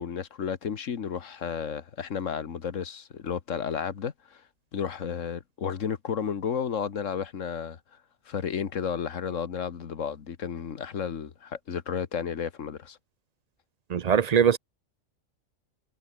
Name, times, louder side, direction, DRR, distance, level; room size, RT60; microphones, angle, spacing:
voice 1, 0.0-4.4 4.7-7.8 8.3-13.0, left 7 dB, 75° left, 1.6 m, -32 dB
voice 2, 13.9-14.6, right 7 dB, 45° right, 0.5 m, -21 dB
omnidirectional pair, 1.3 m